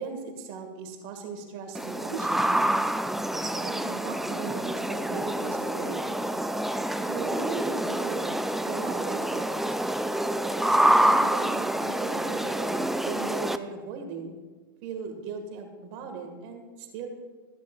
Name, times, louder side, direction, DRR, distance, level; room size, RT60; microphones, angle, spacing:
voice 1, 0.0-2.5 3.3-6.1 7.0-8.3 8.6-9.8 10.5-14.4 14.8-17.1, right 5 dB, 50° right, 4 dB, 1.9 m, -38 dB
sound 1, 1.7-13.6, right 1 dB, ahead, 0.4 m, -27 dB
13.5 x 11.0 x 2.5 m, 1.3 s
hypercardioid pair, 95°, 12 cm